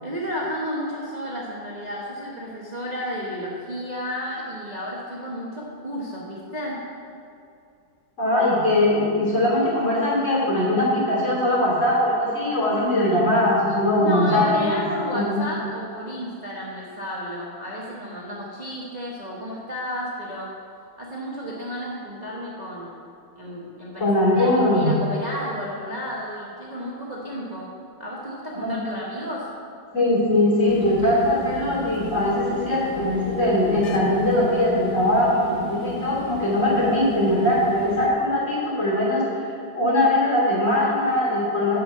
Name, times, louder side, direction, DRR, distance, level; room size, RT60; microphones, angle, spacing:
voice 1, 0.0-6.8 13.9-20.5 21.0-23.0 23.4-27.7 28.0-29.5, equal, 25° right, -5 dB, 1.2 m, -32 dB
voice 2, 8.2-14.8 15.1-15.4 24.0-24.9 28.6-28.8 29.9-39.5 39.7-41.8, left 1 dB, 40° left, -6 dB, 3.4 m, -21 dB
sound 1, 30.7-38.1, equal, 65° left, 1.5 m, -34 dB
11.0 x 5.6 x 7.5 m, 2.5 s
omnidirectional pair, 2.0 m